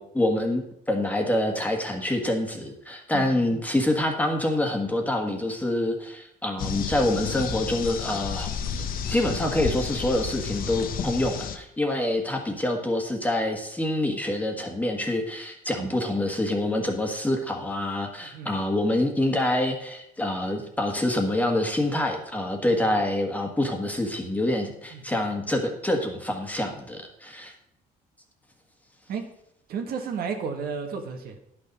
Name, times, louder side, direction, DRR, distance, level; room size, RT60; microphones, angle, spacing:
voice 1, 0.0-8.5 9.1-27.5, left 1 dB, 10° left, 3 dB, 1.6 m, -26 dB
voice 2, 3.1-3.6 15.8-16.0 18.2-18.5 22.6-22.9 24.7-25.2 29.1-29.3 29.7-31.4, right 6 dB, 65° right, 4 dB, 1.7 m, -34 dB
sound 1, 6.6-11.6, left 7 dB, 55° left, 0.9 m, -31 dB
10.5 x 6.7 x 5.4 m, 0.76 s
cardioid pair, 110°, 17 cm